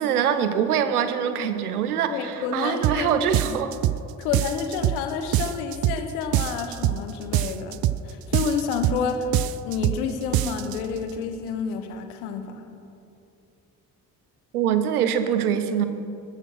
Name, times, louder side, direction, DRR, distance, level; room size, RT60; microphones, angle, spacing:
voice 1, 0.0-3.7 14.5-15.8, right 8 dB, 90° right, 10 dB, 0.8 m, -24 dB
voice 2, 2.1-3.6 4.2-9.3 9.6-12.6, left 6 dB, 80° left, 7 dB, 1.3 m, -29 dB
sound 1, 2.8-3.0 3.3-4.0 4.3-5.0 5.3-6.0 6.3-7.0 7.3-8.0 8.3-9.0 9.3-10.0 10.3-10.8, right 14 dB, 55° right, 0.6 m, -24 dB
15.0 x 14.5 x 6.2 m, 2.7 s
hypercardioid pair, 40°, 43 cm